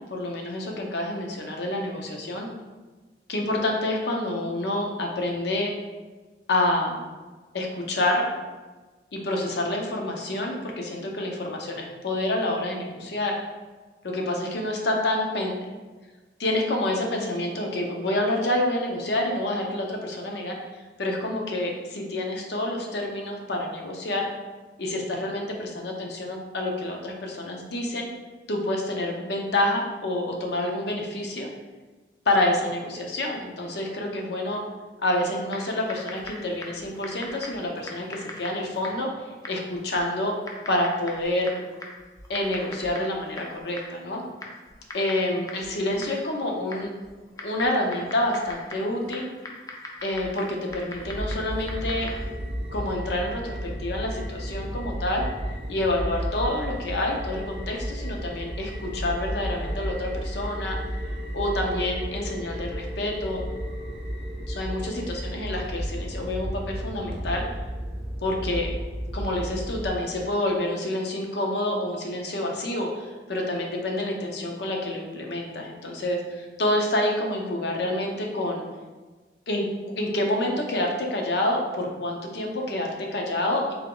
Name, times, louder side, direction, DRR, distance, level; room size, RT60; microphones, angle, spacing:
voice 1, 0.1-2.5 3.3-5.7 6.5-7.0 7.5-8.3 9.1-13.3 14.0-15.5 16.4-24.3 24.8-28.1 28.5-31.5 32.3-34.6 35.0-40.3 40.7-41.6 42.3-44.2 44.9-46.9 47.4-49.3 50.0-52.1 52.7-55.3 55.7-60.8 61.3-63.5 64.5-67.4 68.2-68.7 69.1-78.6 79.5-79.7 80.0-83.7, left 1 dB, 65° left, 1 dB, 0.6 m, -28 dB
Typing, 35.5-52.4, left 2 dB, 20° left, 0.4 m, -42 dB
sound 1, 50.9-69.9, equal, 30° right, 0.5 m, -33 dB
3.5 x 2.9 x 3.7 m, 1.3 s
head